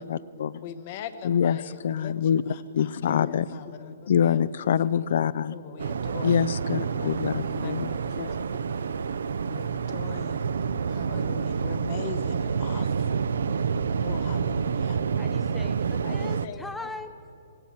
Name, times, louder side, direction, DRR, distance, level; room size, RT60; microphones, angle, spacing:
voice 1, 0.0-0.6 1.2-3.5 4.1-5.6 6.2-7.9, left 8 dB, 60° left, 19 dB, 0.4 m, -25 dB
voice 2, 0.6-2.1 2.5-4.4 5.5-9.0 9.5-10.4 10.9-13.0 14.0-15.0 16.0-16.9, left 8 dB, 40° left, 11 dB, 0.9 m, -41 dB
Waves surf, 5.8-16.5, right 6 dB, 80° right, 0.5 m, -28 dB
voice 3, 15.2-17.4, left 2 dB, 5° left, 10 dB, 0.6 m, -40 dB
19.5 x 17.0 x 4.2 m, 2.8 s
hypercardioid pair, 155°, 0 cm